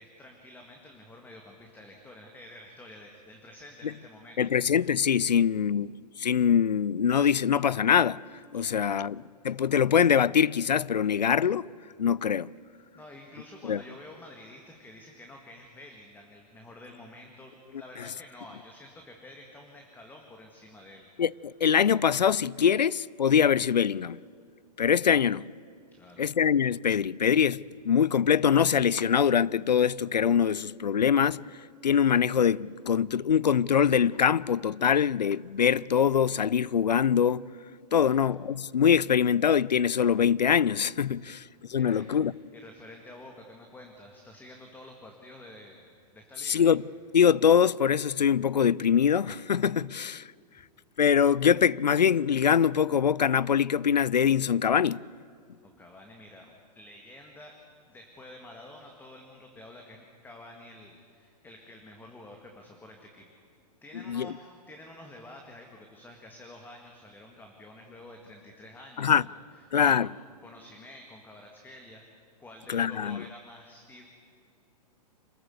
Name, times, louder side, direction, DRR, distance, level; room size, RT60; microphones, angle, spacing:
voice 1, 0.0-4.5 5.3-5.4 8.5-8.9 12.7-21.1 25.9-26.3 37.9-38.2 41.1-41.4 41.7-45.8 46.1-46.7 55.6-57.6 57.9-63.3 63.8-70.1 70.4-72.0 72.4-74.0, left 1 dB, 10° left, 1.8 m, -49 dB
voice 2, 4.4-8.2 8.5-11.7 12.0-12.5 13.7-13.8 21.2-24.2 24.8-25.5 26.2-31.4 31.8-37.4 37.9-41.4 41.7-42.3 46.4-46.8 47.1-50.3 51.0-55.0 64.1-64.3 69.0-69.2 69.7-70.1 72.7-73.2, left 8 dB, 90° left, 0.5 m, -23 dB
26.5 x 14.0 x 8.0 m
hypercardioid pair, 120°, 21 cm